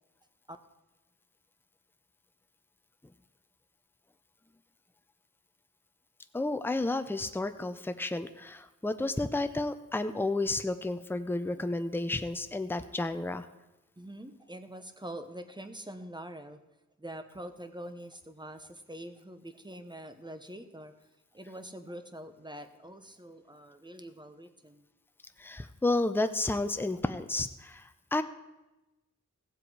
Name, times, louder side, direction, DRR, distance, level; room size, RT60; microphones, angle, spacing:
voice 1, 6.3-13.5 25.4-27.8 28.1-28.2, left 2 dB, 5° left, 9 dB, 0.6 m, -31 dB
voice 2, 14.0-16.6 17.0-20.9 21.3-24.8, right 1 dB, 15° right, 8 dB, 0.9 m, -45 dB
15.5 x 7.6 x 4.8 m, 1.0 s
wide cardioid pair, 65°, 30 cm